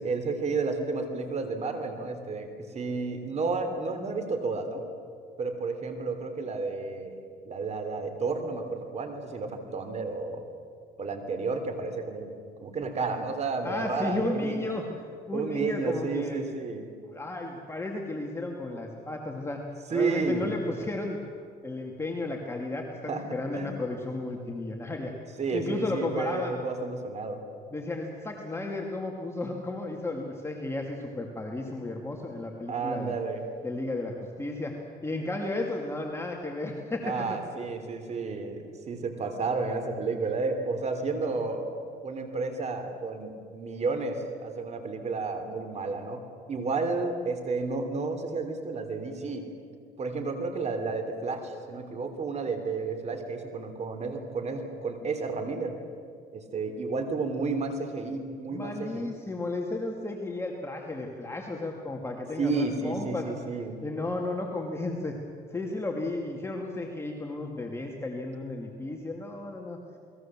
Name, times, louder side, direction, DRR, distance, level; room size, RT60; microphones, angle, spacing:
voice 1, 0.0-4.8 5.4-10.4 11.0-12.3 12.6-14.8 15.3-17.0 19.9-20.6 23.1-23.8 25.4-27.4 32.7-33.4 37.0-41.7 42.0-46.2 46.5-49.5 50.0-55.7 56.3-59.1 62.4-63.8, right 4 dB, 40° right, 7 dB, 3.2 m, -31 dB
voice 2, 13.6-14.9 15.3-16.5 17.1-19.6 19.9-21.2 21.6-25.1 25.5-26.6 27.7-33.2 33.6-37.4 58.5-63.3 63.8-65.2 65.5-69.8, left 2 dB, 15° left, 1 dB, 2.5 m, -33 dB
29.5 x 21.0 x 7.5 m, 2.3 s
cardioid pair, 110°, 17 cm